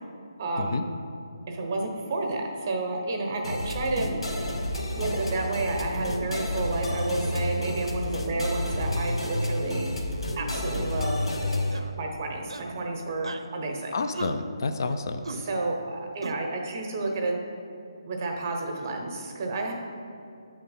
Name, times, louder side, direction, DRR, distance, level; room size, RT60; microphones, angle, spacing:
voice 1, 0.4-0.8 1.5-4.1 5.0-9.9 10.4-11.3 12.0-14.0 15.3-17.3 18.0-19.7, right 2 dB, 30° right, 2 dB, 0.7 m, -30 dB
sound 1, 3.4-11.8, left 1 dB, 80° left, 0.9 m, -30 dB
sound 2, 11.7-12.0 12.5-12.8 13.2-13.5 14.1-14.4 15.2-15.4 16.2-16.4, right 3 dB, 75° right, 0.5 m, -37 dB
voice 2, 13.9-15.4, left 3 dB, 45° left, 8 dB, 0.3 m, -30 dB
6.5 x 3.4 x 5.4 m, 2.5 s
hypercardioid pair, 170°, 3 cm